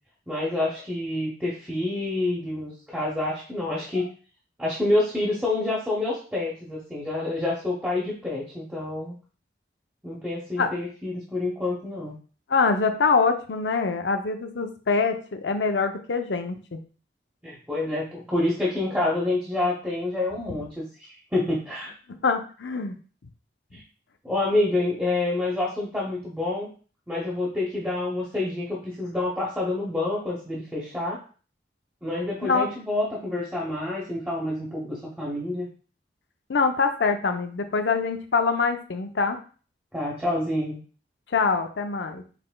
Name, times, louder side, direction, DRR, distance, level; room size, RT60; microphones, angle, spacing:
voice 1, 0.3-4.1 4.6-9.1 10.0-12.1 17.4-21.9 23.7-23.8 24.2-26.7 27.1-31.2 32.0-35.7 39.9-40.8, left 2 dB, 10° right, -5 dB, 0.9 m, -28 dB
voice 2, 12.5-16.8 20.5-20.6 22.1-23.0 32.4-32.7 36.5-39.4 41.3-42.2, left 4 dB, 85° left, 6 dB, 0.6 m, -24 dB
5.8 x 3.2 x 2.2 m, 0.39 s
head